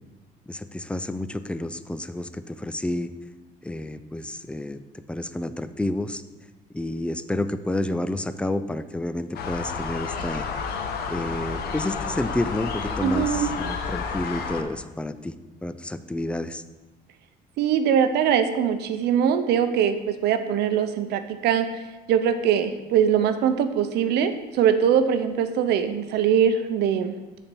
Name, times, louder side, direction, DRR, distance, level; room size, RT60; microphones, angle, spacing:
voice 1, 0.5-3.1 3.6-4.8 5.1-6.2 6.7-10.5 11.1-15.3 15.6-16.6, left 1 dB, 5° left, 12 dB, 0.3 m, -30 dB
sound 1, 9.4-14.6, left 5 dB, 65° left, 0.8 m, -30 dB
voice 2, 13.0-13.5 17.6-21.7 22.1-27.2, right 8 dB, 75° right, 9 dB, 0.6 m, -22 dB
6.5 x 4.2 x 6.1 m, 1.1 s
cardioid pair, 110°, 17 cm